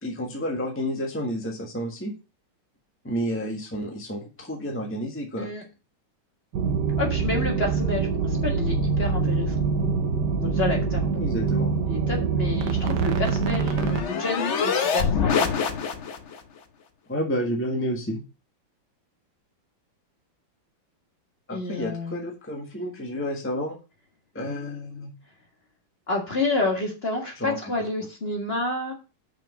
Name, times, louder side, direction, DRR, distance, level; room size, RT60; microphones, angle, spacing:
voice 1, 0.0-2.1 3.0-5.5 11.1-11.7 17.1-18.2 21.5-23.8 24.3-25.1 27.4-27.6, equal, 5° left, 0 dB, 1.3 m, -30 dB
sound 1, 6.5-14.0, right 5 dB, 65° right, 1.4 m, -24 dB
voice 2, 7.0-9.7 10.4-11.2 11.8-13.7 14.1-15.5 21.5-22.2 26.1-28.9, left 2 dB, 30° left, 1 dB, 1.8 m, -29 dB
sound 2, 12.8-16.4, left 6 dB, 50° left, 0.9 m, -26 dB
6.1 x 5.2 x 6.3 m, 0.31 s
omnidirectional pair, 2.2 m